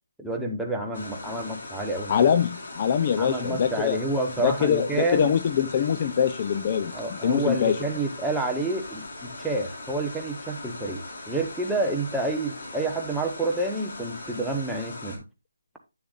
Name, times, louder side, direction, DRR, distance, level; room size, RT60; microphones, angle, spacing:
voice 1, 0.2-2.1 3.2-5.3 6.9-15.2, right 2 dB, ahead, 0.8 m, -29 dB
sound 1, 0.9-15.2, left 2 dB, 45° left, 2.9 m, -40 dB
voice 2, 2.1-4.0 4.4-7.8, left 8 dB, 25° left, 0.4 m, -23 dB
9.6 x 6.9 x 2.4 m
hypercardioid pair, 170°, 0 cm